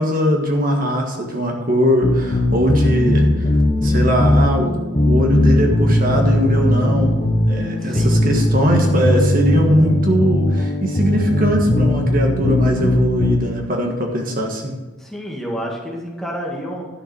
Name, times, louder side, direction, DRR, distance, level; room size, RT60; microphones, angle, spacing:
voice 1, 0.0-3.5 3.8-7.2 7.5-14.8, equal, 50° right, 2 dB, 1.6 m, -20 dB
sound 1, 2.0-13.4, left 1 dB, 35° left, 1.0 m, -18 dB
voice 2, 7.7-8.2 15.0-16.9, equal, ahead, -2 dB, 2.0 m, -29 dB
11.5 x 6.7 x 6.1 m, 1.2 s
head